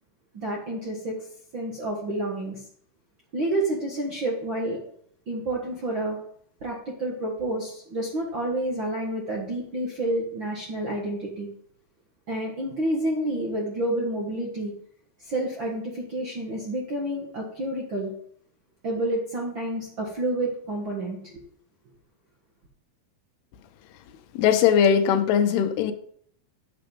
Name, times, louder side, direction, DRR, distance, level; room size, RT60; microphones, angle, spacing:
voice 1, 0.3-1.2 1.5-2.6 3.3-4.8 5.3-6.2 6.6-11.5 12.3-14.7 15.3-18.1 18.8-21.2, right 1 dB, 50° right, -2 dB, 1.4 m, -29 dB
voice 2, 24.3-25.9, left 8 dB, 85° left, 8 dB, 2.9 m, -20 dB
9.6 x 7.0 x 5.2 m, 0.64 s
omnidirectional pair, 4.5 m